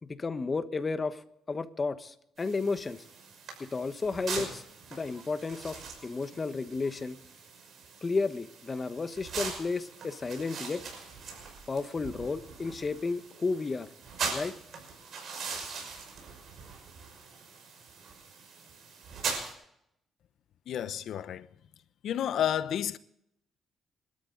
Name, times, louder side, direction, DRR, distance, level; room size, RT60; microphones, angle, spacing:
voice 1, 0.0-3.0 3.6-4.6 4.9-7.2 8.0-10.8 11.7-13.9 14.3-14.5, left 4 dB, 30° left, 1.2 m, -33 dB
sound 1, 2.4-19.5, right 5 dB, 60° right, 5.8 m, -41 dB
voice 2, 20.7-21.5 22.0-23.0, left 10 dB, 70° left, 0.9 m, -31 dB
27.0 x 13.0 x 3.9 m
cardioid pair, 90°, 0 cm